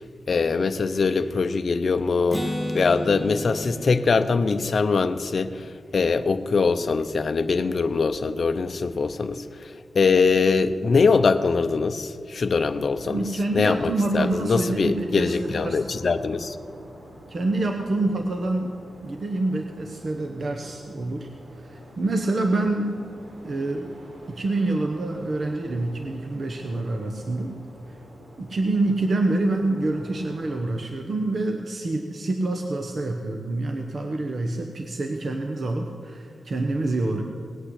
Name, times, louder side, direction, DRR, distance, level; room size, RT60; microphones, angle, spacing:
voice 1, 0.3-2.4 2.7-13.2 13.5-16.6, left 4 dB, 45° left, 9 dB, 0.6 m, -22 dB
Acoustic guitar, 2.3-6.0, equal, 5° right, 1.0 m, -33 dB
sound 1, 12.5-30.6, equal, 70° right, 4.0 m, -47 dB
voice 2, 13.1-15.8 17.3-18.7 19.0-21.3 21.6-23.0 23.4-23.9 24.3-27.6 28.4-37.2, right 2 dB, 45° right, 4 dB, 0.9 m, -26 dB
18.5 x 8.9 x 8.1 m, 2.2 s
wide cardioid pair, 150°, 0 cm